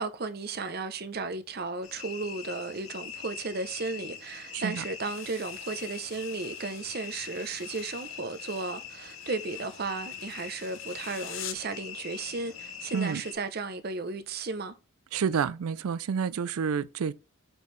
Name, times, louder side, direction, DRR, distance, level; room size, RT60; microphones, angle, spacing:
voice 1, 0.0-14.8, right 3 dB, 45° right, 0.6 m, -35 dB
sound 1, 1.8-13.3, left 7 dB, 85° left, 1.7 m, -43 dB
voice 2, 4.5-4.8 12.9-13.2 15.1-17.1, right 6 dB, 90° right, 0.4 m, -29 dB
sound 2, 5.0-11.8, left 10 dB, 65° left, 0.7 m, -47 dB
7.1 x 4.5 x 3.2 m
head